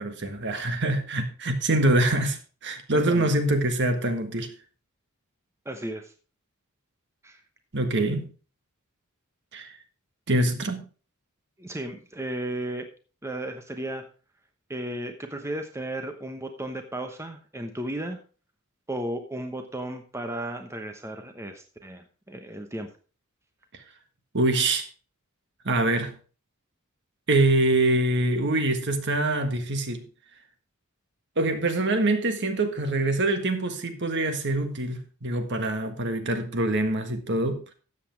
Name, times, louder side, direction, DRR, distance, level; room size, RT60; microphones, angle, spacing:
voice 1, 0.0-4.5 7.7-8.3 9.5-9.8 10.3-10.8 24.3-24.9 25.6-26.2 27.3-30.0 31.4-37.7, right 2 dB, 55° right, 1.5 m, -25 dB
voice 2, 2.9-3.3 5.6-6.1 7.2-7.4 11.6-12.9 13.2-14.0 14.7-18.2 18.9-22.9, right 1 dB, 15° right, 1.0 m, -34 dB
13.0 x 8.4 x 3.3 m
head